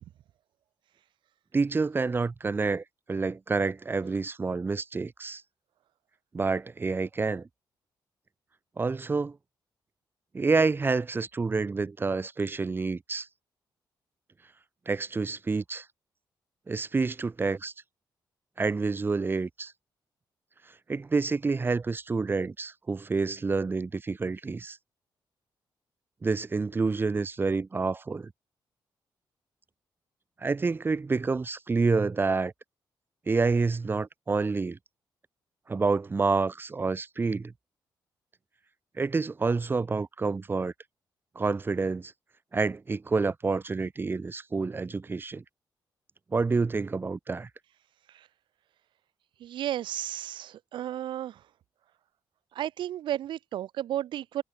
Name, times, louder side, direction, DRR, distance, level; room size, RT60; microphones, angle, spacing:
voice 1, 1.5-2.8 3.1-5.4 6.3-7.5 8.8-9.4 10.3-13.3 14.9-15.8 16.7-17.7 18.6-19.7 20.9-24.8 26.2-28.3 30.4-32.5 33.3-34.8 35.7-37.5 39.0-40.7 41.4-42.1 42.5-45.4 46.3-47.5, right 4 dB, 25° right, 0.9 m, -28 dB
voice 2, 49.4-51.3 52.5-54.4, right 12 dB, 90° right, 3.0 m, -33 dB
cardioid pair, 100°, 8 cm